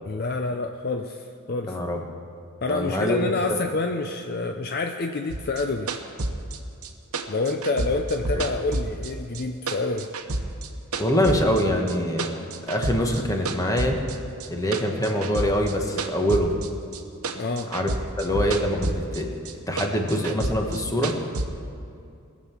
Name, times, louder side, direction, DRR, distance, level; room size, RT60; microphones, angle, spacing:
voice 1, 0.0-1.8 2.6-5.9 7.3-10.1 17.3-17.7, left 3 dB, 45° left, 5 dB, 0.5 m, -27 dB
voice 2, 1.7-2.0 2.7-3.6 11.0-12.3 12.7-14.0 14.5-16.5 17.7-17.9 18.2-19.4 19.7-21.1, equal, 15° left, 2 dB, 1.2 m, -24 dB
sound 1, 5.3-9.4 9.7-11.6 11.9-13.2 13.5-17.0 17.2-19.2 19.5-21.5, right 2 dB, 75° right, 1.0 m, -29 dB
21.0 x 7.5 x 5.9 m, 2.5 s
head